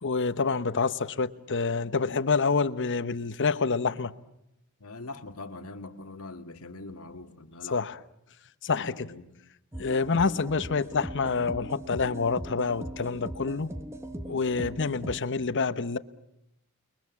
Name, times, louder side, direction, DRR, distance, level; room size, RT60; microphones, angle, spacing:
voice 1, 0.0-4.1 7.7-8.0 8.6-9.1 9.8-13.7 14.3-16.0, left 4 dB, 60° left, 1.0 m, -27 dB
voice 2, 4.8-7.8 9.0-9.3, left 2 dB, 75° left, 1.9 m, -42 dB
sound 1, 9.7-15.2, right 1 dB, 15° right, 1.3 m, -39 dB
29.5 x 22.0 x 7.2 m
head